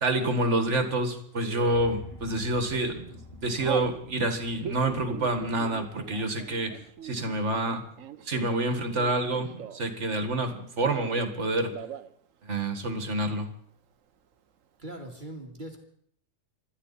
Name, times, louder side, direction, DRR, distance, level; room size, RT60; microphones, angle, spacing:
voice 1, 0.0-7.9 8.3-11.7 12.4-13.5, right 2 dB, 65° right, 7 dB, 2.1 m, -28 dB
Telephone, 1.4-1.9 2.5-2.8 3.1-3.9 4.5-10.0 10.3-11.4 11.7-12.1 12.4-12.5 12.8-13.4, right 9 dB, 80° right, 1.2 m, -40 dB
sound 1, 1.6-7.7, left 2 dB, 15° left, 3.2 m, -48 dB
voice 2, 14.8-15.8, right 1 dB, 35° right, 2 dB, 2.6 m, -40 dB
26.5 x 13.0 x 4.2 m, 0.63 s
omnidirectional pair, 1.3 m